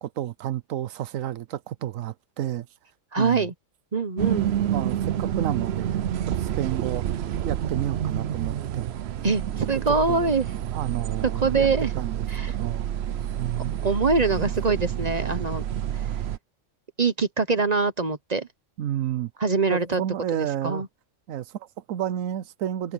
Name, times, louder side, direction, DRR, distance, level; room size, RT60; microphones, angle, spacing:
voice 1, 0.0-2.7 3.2-3.5 4.6-7.1 7.4-9.0 10.1-12.9 13.4-13.8 14.4-14.5 18.8-19.3 19.7-20.8 21.3-22.9, right 11 dB, 85° right, 1.1 m, -31 dB
voice 2, 3.1-3.5 3.9-4.5 9.2-10.5 11.4-11.9 12.3-12.5 13.8-15.6 17.0-18.5 19.4-20.0 20.4-20.9, right 4 dB, 35° right, 0.9 m, -24 dB
sound 1, 4.2-16.4, right 10 dB, 60° right, 0.8 m, -28 dB
omnidirectional pair, 1.3 m